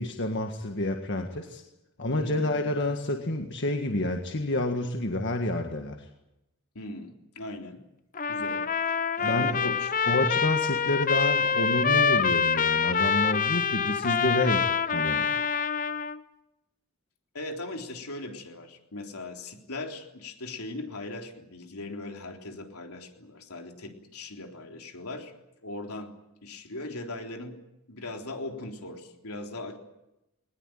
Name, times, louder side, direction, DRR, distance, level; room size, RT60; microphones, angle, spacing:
voice 1, 0.0-1.6 2.0-6.1 9.2-9.8 10.1-15.3, left 1 dB, 50° left, 4 dB, 1.8 m, -29 dB
voice 2, 2.1-2.6 6.8-7.8 8.3-9.9 17.3-25.3 25.6-26.1 26.4-27.6 27.9-29.8, left 2 dB, 80° left, 3 dB, 3.6 m, -39 dB
Trumpet, 8.2-16.2, left 6 dB, 35° left, 0.8 m, -26 dB
21.0 x 20.0 x 9.3 m, 0.88 s
head